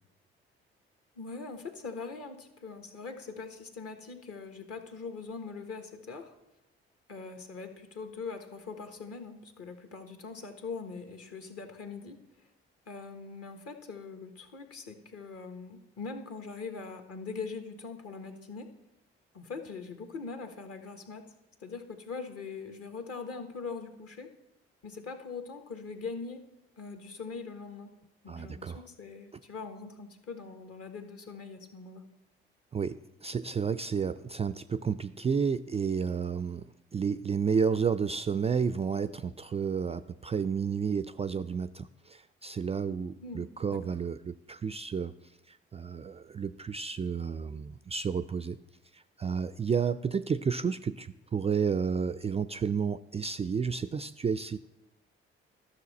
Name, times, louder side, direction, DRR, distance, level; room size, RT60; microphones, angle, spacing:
voice 1, 1.1-6.3 7.1-12.5 12.9-18.7 19.3-21.2 21.6-24.3 24.8-26.4 26.8-27.9 28.2-32.0 43.2-43.8, left 4 dB, 50° left, 7 dB, 1.3 m, -42 dB
voice 2, 28.3-28.8 32.7-45.1 45.5-48.6 48.9-54.6, right 6 dB, 20° right, 14 dB, 0.3 m, -31 dB
12.5 x 6.2 x 4.1 m, 0.95 s
hypercardioid pair, 45°, 30 cm